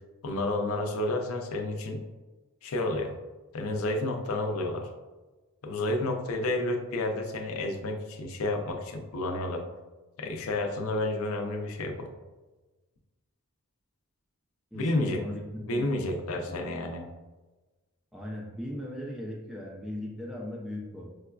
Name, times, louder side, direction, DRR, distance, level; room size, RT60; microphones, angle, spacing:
voice 1, 0.2-2.0 2.6-3.1 3.5-4.9 5.6-9.7 10.2-12.1 14.7-15.2 15.6-17.1, left 2 dB, 70° left, 4 dB, 0.5 m, -30 dB
voice 2, 14.7-16.1 16.4-16.7 18.1-21.1, left 1 dB, ahead, -3 dB, 0.3 m, -38 dB
4.8 x 2.3 x 2.3 m, 1.2 s
head